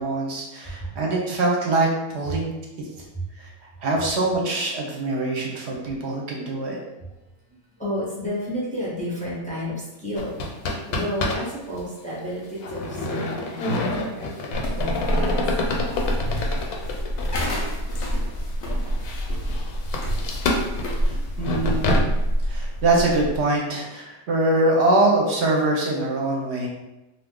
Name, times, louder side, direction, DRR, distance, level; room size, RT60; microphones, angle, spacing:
voice 1, 0.0-2.5 3.4-3.5 3.8-6.8 21.4-21.8 22.5-26.7, right 2 dB, 55° right, -1 dB, 0.8 m, -23 dB
voice 2, 7.5-15.5 15.8-16.5 20.6-20.9 21.1-21.3, equal, 10° left, -6 dB, 0.5 m, -32 dB
sound 1, 10.2-11.5 11.8-11.9 12.6-17.4 18.0-18.1 18.7-22.0, left 2 dB, 90° left, 1.1 m, -27 dB
sound 2, 14.5-23.4, equal, 60° left, 0.8 m, -26 dB
2.7 x 2.4 x 3.6 m, 0.96 s
omnidirectional pair, 1.5 m